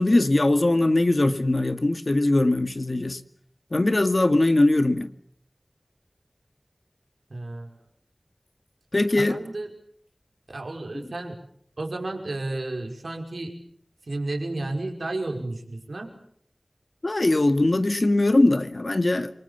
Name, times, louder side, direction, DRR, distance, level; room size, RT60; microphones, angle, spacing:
voice 1, 0.0-3.2 3.7-5.1 8.9-9.4 17.0-19.3, left 2 dB, 55° left, 2.1 m, -21 dB
voice 2, 7.3-7.7 9.2-9.7 10.5-11.4 11.8-13.6 14.0-16.1, right 2 dB, 90° right, 5.3 m, -32 dB
28.0 x 25.5 x 7.3 m
wide cardioid pair, 55°, 0 cm